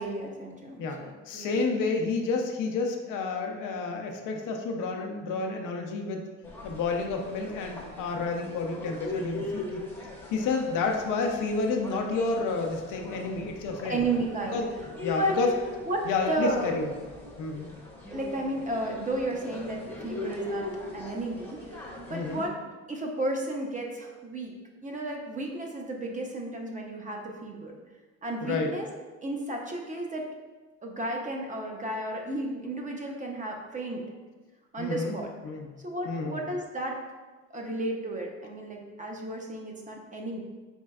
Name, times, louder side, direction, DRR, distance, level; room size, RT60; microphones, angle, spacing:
voice 1, 0.0-1.6 13.8-14.6 15.2-15.4 15.9-16.7 18.1-20.7 20.9-21.8 22.1-22.6 22.9-24.6 24.8-27.7 28.2-28.9 29.2-30.3 30.8-34.0 34.7-35.3 35.8-37.0 37.5-40.4, right 2 dB, 25° right, 0 dB, 0.7 m, -33 dB
voice 2, 1.3-6.2 6.6-9.8 10.3-14.0 14.5-14.7 15.0-15.5 16.1-16.9 17.4-17.7 22.1-22.4 28.4-28.7 34.8-35.2 35.4-35.7 36.1-36.4, left 4 dB, 85° left, 3 dB, 0.6 m, -30 dB
sound 1, 6.4-22.5, left 2 dB, 5° left, 0.8 m, -40 dB
4.4 x 3.1 x 2.3 m, 1.3 s
cardioid pair, 90°, 30 cm